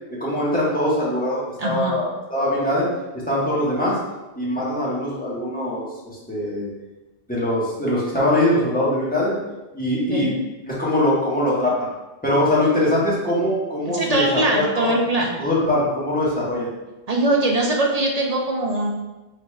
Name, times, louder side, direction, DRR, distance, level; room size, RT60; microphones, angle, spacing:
voice 1, 0.2-2.9 3.3-4.0 4.4-5.9 6.3-6.7 7.3-9.4 9.7-10.4 10.6-11.8 12.2-14.9 15.4-16.7, left 1 dB, 10° left, -8 dB, 1.4 m, -22 dB
voice 2, 1.6-2.0 10.1-10.3 13.9-15.4 17.1-18.9, right 2 dB, 45° right, -1 dB, 0.5 m, -21 dB
4.8 x 4.2 x 2.3 m, 1.1 s
omnidirectional pair, 1.1 m